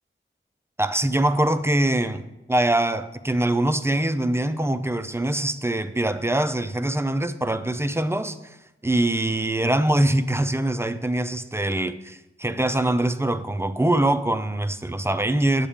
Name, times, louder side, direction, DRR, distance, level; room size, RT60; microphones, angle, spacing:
voice 1, 0.8-2.2 2.5-8.6 8.8-15.7, right 1 dB, 10° right, 11 dB, 0.4 m, -23 dB
8.4 x 8.0 x 3.6 m, 0.94 s
wide cardioid pair, 95°, 21 cm